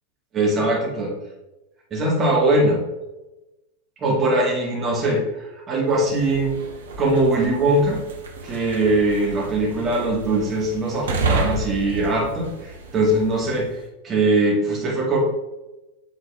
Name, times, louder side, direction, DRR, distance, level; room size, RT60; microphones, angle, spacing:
voice 1, 0.3-1.1 1.9-2.8 4.0-5.2 5.7-6.5 7.0-8.0 8.4-13.7 14.0-15.2, right 2 dB, 25° right, -3 dB, 2.2 m, -21 dB
sound 1, 5.9-13.7, right 2 dB, 65° right, 1.1 m, -31 dB
8.1 x 4.0 x 3.5 m, 1.0 s
figure-of-eight pair, 90°, 0 cm